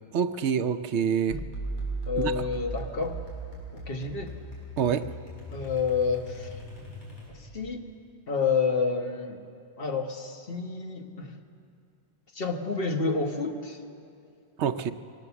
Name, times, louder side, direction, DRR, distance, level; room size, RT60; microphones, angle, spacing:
voice 1, 0.1-1.4 2.2-2.4 4.8-5.1 14.6-14.9, right 7 dB, 75° right, 11 dB, 1.0 m, -26 dB
sound 1, 1.3-7.6, right 2 dB, 80° left, 6.0 m, -38 dB
voice 2, 2.1-3.2 3.7-4.3 5.5-6.6 7.3-7.8 8.3-9.4 9.8-11.4 12.3-13.8, left 5 dB, 55° left, 4 dB, 1.5 m, -29 dB
23.5 x 18.5 x 7.0 m, 2.4 s
omnidirectional pair, 1.2 m